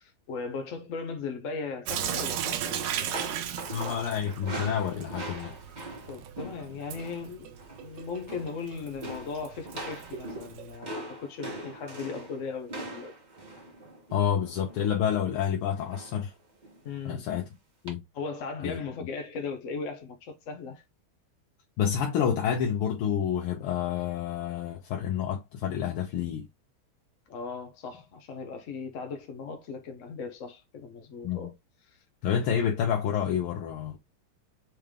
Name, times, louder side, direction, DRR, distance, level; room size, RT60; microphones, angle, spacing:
voice 1, 0.0-3.4 3.7-3.9 6.1-7.5 7.8-13.1 16.8-17.3 18.1-20.8 27.3-31.5, left 4 dB, 65° left, 0.8 m, -38 dB
Sink (filling or washing) / Drip, 1.9-10.8, right 9 dB, 70° right, 1.1 m, -37 dB
sound 1, 2.7-7.3 7.5-7.9 8.1-8.6 9.0-15.0 15.9-16.3 16.6-16.8 17.9-18.0, right 2 dB, 25° right, 1.2 m, -41 dB
voice 2, 3.7-5.5 14.1-16.3 17.1-17.5 17.8-18.0 18.6-18.8 21.8-26.5 31.2-31.5 32.2-34.0, left 8 dB, 90° left, 1.7 m, -28 dB
4.4 x 3.3 x 3.6 m
omnidirectional pair, 2.4 m